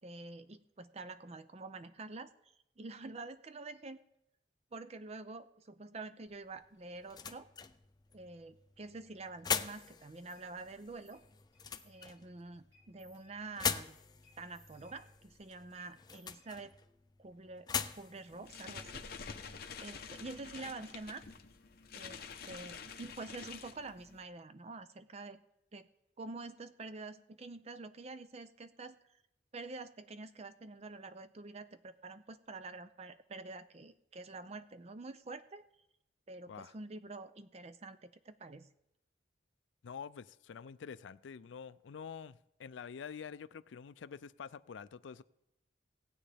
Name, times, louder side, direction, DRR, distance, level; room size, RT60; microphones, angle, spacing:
voice 1, 0.0-2.3 2.8-4.0 4.7-7.5 8.1-11.2 11.8-14.0 14.4-16.7 17.2-17.7 18.0-19.1 19.8-21.2 21.9-25.4 25.7-25.9 26.2-29.0 29.5-35.6 36.3-38.7, right 3 dB, 35° right, 0.5 m, -47 dB
sound 1, 6.3-19.8, left 7 dB, 20° left, 0.4 m, -43 dB
sound 2, 10.3-10.5 11.1-11.3 11.5-12.3 12.7-13.7 14.2-15.4 15.7-17.0, left 1 dB, 15° right, 3.3 m, -67 dB
sound 3, 18.3-24.2, left 5 dB, 55° left, 0.9 m, -48 dB
voice 2, 39.8-45.2, left 6 dB, 80° left, 0.4 m, -47 dB
18.5 x 8.5 x 3.4 m
head